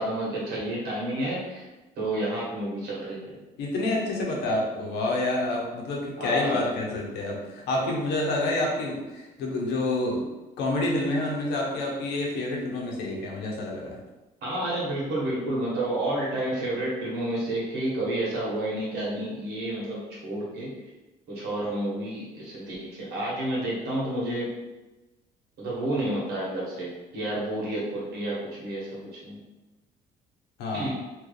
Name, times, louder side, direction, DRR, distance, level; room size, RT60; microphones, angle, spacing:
voice 1, 0.0-1.7 2.0-3.4 6.2-6.7 14.4-20.7 21.3-24.5 25.6-29.4 30.7-31.0, right 1 dB, 70° right, -5 dB, 1.4 m, -30 dB
voice 2, 3.6-10.2 10.6-14.0 30.6-30.9, left 2 dB, 85° left, -1 dB, 0.8 m, -28 dB
3.0 x 2.4 x 3.3 m, 1.1 s
cardioid pair, 110°, 17 cm